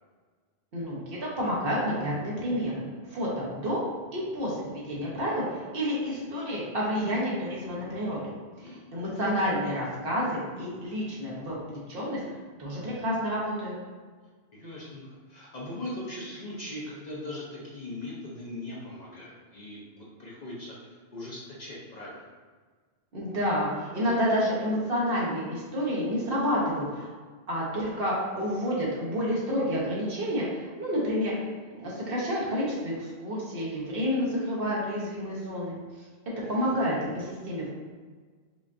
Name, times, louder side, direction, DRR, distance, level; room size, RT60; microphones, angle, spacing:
voice 1, 0.7-3.8 4.1-8.2 8.6-12.2 12.6-13.7 23.1-27.1 27.5-31.3 31.8-35.7 36.5-37.7, equal, 60° right, -6 dB, 1.2 m, -29 dB
voice 2, 8.5-8.8 14.5-22.3 36.4-36.8, left 1 dB, 45° left, -6 dB, 0.7 m, -40 dB
5.0 x 2.4 x 2.5 m, 1.5 s
omnidirectional pair, 1.1 m